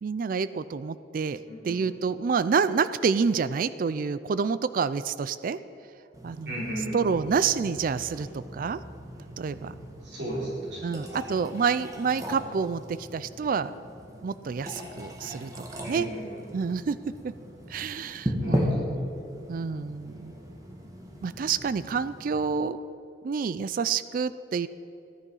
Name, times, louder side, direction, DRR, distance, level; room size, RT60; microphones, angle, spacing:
voice 1, 0.0-5.6 6.2-6.6 6.9-8.8 9.4-9.7 10.8-13.7 14.2-16.1 16.5-17.0 17.2-17.3 17.7-19.1 19.5-20.3 21.2-22.9 23.2-24.7, right 5 dB, 50° right, 14 dB, 0.3 m, -28 dB
voice 2, 1.5-1.8 6.5-7.0 10.0-10.8 15.8-16.4 18.4-18.7 19.0-19.1, right 1 dB, 70° right, -5 dB, 4.1 m, -35 dB
sound 1, 6.1-22.4, equal, 20° right, 1.7 m, -37 dB
15.5 x 11.0 x 5.5 m, 2.8 s
head